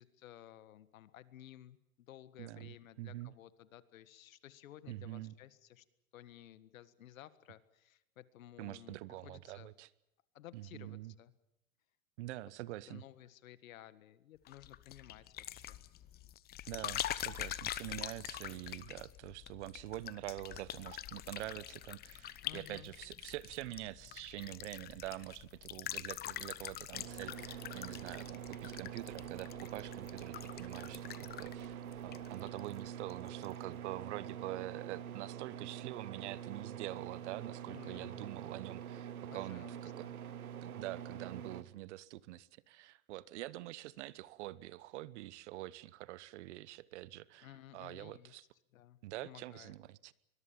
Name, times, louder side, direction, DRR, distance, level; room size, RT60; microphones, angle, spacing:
voice 1, 0.0-5.8 6.1-9.7 10.3-11.3 12.9-15.8 22.4-22.9 37.7-38.3 39.3-40.1 47.4-48.4 48.7-49.8, left 12 dB, 70° left, 15 dB, 1.8 m, -55 dB
voice 2, 2.4-3.3 4.9-5.3 8.6-9.9 10.5-11.1 12.2-13.0 16.7-39.7 40.0-40.1 40.6-48.4 49.0-50.1, right 16 dB, 55° right, 20 dB, 1.1 m, -45 dB
sound 1, 14.5-32.8 33.1-33.5, left 13 dB, 20° left, 0.9 m, -45 dB
sound 2, 26.9-41.6, right 9 dB, 85° right, 1.5 m, -45 dB
24.0 x 21.5 x 7.4 m, 0.84 s
hypercardioid pair, 125°, 42 cm